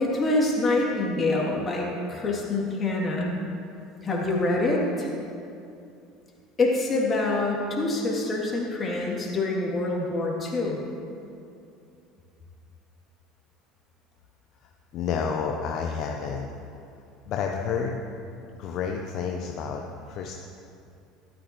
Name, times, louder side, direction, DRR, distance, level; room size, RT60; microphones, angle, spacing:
voice 1, 0.0-3.3 4.0-5.1 6.6-10.8, left 2 dB, 30° left, -3 dB, 2.9 m, -26 dB
voice 2, 14.9-16.5 17.3-18.0 18.6-20.4, left 6 dB, 55° left, 2 dB, 0.8 m, -30 dB
13.5 x 13.0 x 3.2 m, 2.6 s
hypercardioid pair, 70°, 0 cm